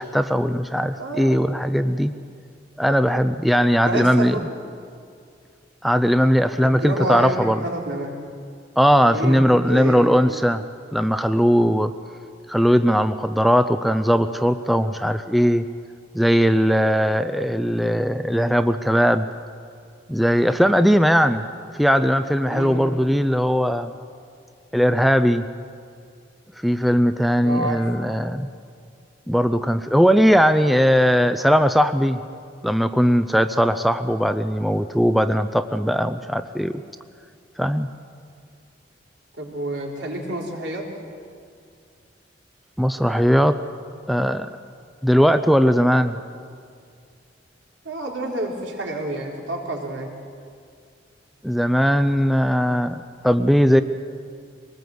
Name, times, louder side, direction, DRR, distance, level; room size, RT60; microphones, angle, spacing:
voice 1, 0.0-2.1 2.8-4.4 5.8-7.7 8.8-10.6 10.9-11.9 12.5-15.7 16.1-19.3 20.1-21.4 21.7-23.9 24.7-25.4 26.6-28.5 29.3-32.2 32.6-36.8 37.6-37.9 42.8-43.6 44.1-44.5 45.0-46.2 51.4-53.8, equal, ahead, 10 dB, 0.5 m, -19 dB
voice 2, 1.0-1.4 3.8-4.6 6.6-8.1 9.1-10.0 22.5-22.8 27.4-27.8 39.4-40.8 47.8-50.1, right 1 dB, 85° right, -1 dB, 4.0 m, -29 dB
23.0 x 19.5 x 7.9 m, 2.3 s
head